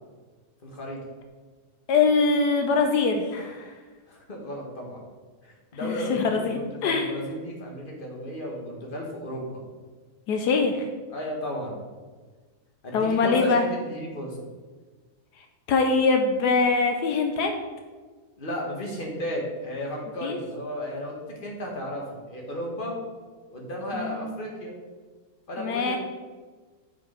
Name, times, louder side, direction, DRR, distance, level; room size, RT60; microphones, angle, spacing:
voice 1, 0.6-1.0 4.1-5.0 5.4-9.6 11.1-11.8 12.8-14.4 18.4-22.9 23.5-24.7 25.5-26.0, equal, 30° left, -1 dB, 1.6 m, -34 dB
voice 2, 1.9-3.7 5.8-7.1 10.3-10.9 12.9-13.6 15.7-17.5 20.2-20.4 23.9-24.3 25.6-26.0, left 4 dB, 75° left, 4 dB, 1.2 m, -23 dB
7.4 x 5.2 x 5.0 m, 1.4 s
omnidirectional pair, 1.8 m